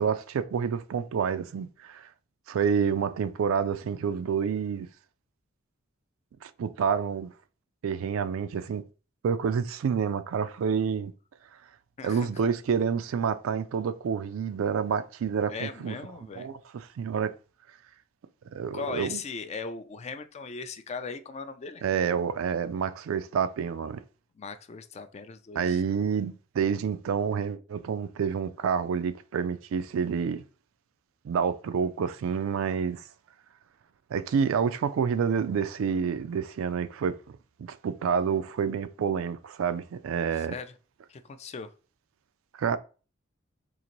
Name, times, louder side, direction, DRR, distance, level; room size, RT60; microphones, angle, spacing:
voice 1, 0.0-2.1 2.5-4.9 6.4-7.3 7.8-8.9 9.2-11.1 12.0-16.0 16.4-17.3 18.5-19.2 21.8-24.0 25.6-30.4 31.2-33.0 34.1-37.2 37.6-40.6 42.6-42.8, right 6 dB, 85° right, 0.3 m, -28 dB
voice 2, 15.5-16.5 18.7-21.8 24.4-26.1 40.4-40.7 41.1-41.7, left 4 dB, 35° left, 0.3 m, -38 dB
3.9 x 2.5 x 3.0 m
head